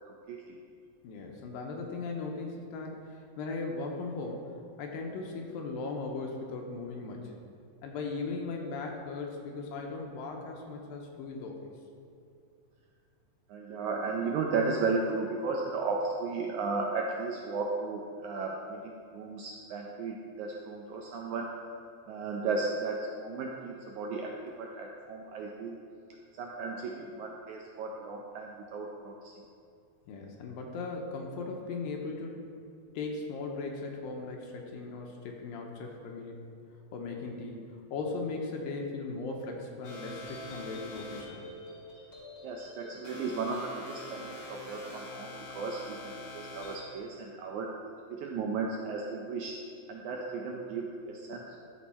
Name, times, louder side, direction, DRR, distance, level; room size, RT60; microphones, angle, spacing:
voice 1, 0.1-0.6 13.5-21.5 22.1-24.3 24.6-25.8 26.3-29.3 42.4-47.7 48.1-49.5 49.9-51.6, right 4 dB, 80° right, 0 dB, 1.7 m, -35 dB
voice 2, 1.0-7.4 7.8-11.7 30.1-32.4 32.9-36.4 36.9-37.6 37.9-41.5, left 3 dB, 80° left, 1 dB, 2.4 m, -38 dB
sound 1, 39.8-46.9, left 1 dB, 45° left, 1.8 m, -45 dB
13.5 x 5.3 x 4.2 m, 2.4 s
omnidirectional pair, 4.1 m